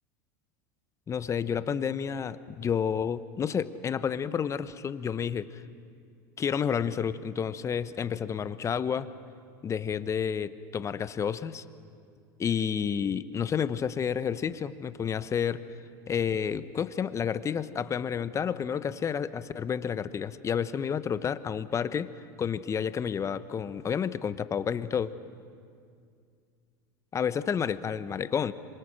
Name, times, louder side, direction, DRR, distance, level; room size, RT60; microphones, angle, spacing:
voice 1, 1.1-5.6 6.4-9.1 9.6-11.6 12.4-15.7 16.1-22.1 22.4-25.1 27.1-28.5, left 7 dB, 30° left, 14 dB, 1.0 m, -30 dB
26.5 x 24.0 x 6.4 m, 2.3 s
hypercardioid pair, 95°, 11 cm